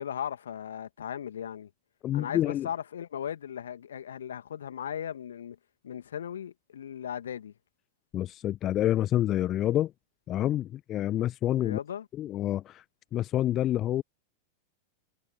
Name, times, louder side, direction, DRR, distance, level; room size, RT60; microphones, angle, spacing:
voice 1, 0.0-1.7 2.1-5.6 5.8-7.5 11.6-12.1, left 9 dB, 65° left, 2.4 m, -37 dB
voice 2, 2.0-2.7 8.1-9.9 10.3-11.8 12.2-12.8 13.1-14.0, left 12 dB, 30° left, 1.0 m, -27 dB
figure-of-eight pair, 90°, 0 cm